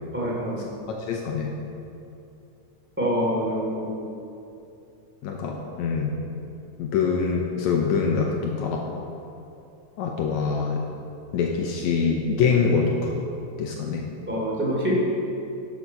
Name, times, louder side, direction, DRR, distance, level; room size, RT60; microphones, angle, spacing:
voice 1, 0.1-0.6 3.0-3.9 14.3-14.9, equal, 5° right, -5 dB, 2.0 m, -26 dB
voice 2, 0.9-1.5 5.2-6.1 6.8-8.8 10.0-10.8 11.3-13.2 13.6-14.0, left 5 dB, 75° left, 0 dB, 1.9 m, -24 dB
12.0 x 7.4 x 5.5 m, 2.7 s
omnidirectional pair, 3.7 m